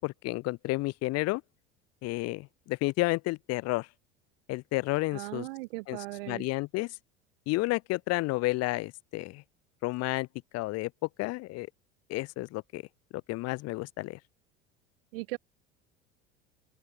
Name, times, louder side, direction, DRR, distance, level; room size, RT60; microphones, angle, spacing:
voice 1, 0.0-1.4 2.0-3.9 4.5-5.5 5.9-6.0 6.3-6.9 7.5-9.4 9.8-10.3 10.5-10.9 11.2-11.7 12.1-12.8 13.3-14.2, left 21 dB, 55° left, 2.9 m, -31 dB
voice 2, 5.1-6.5 15.1-15.4, right 23 dB, 70° right, 3.1 m, -38 dB
open air
hypercardioid pair, 80°, 30 cm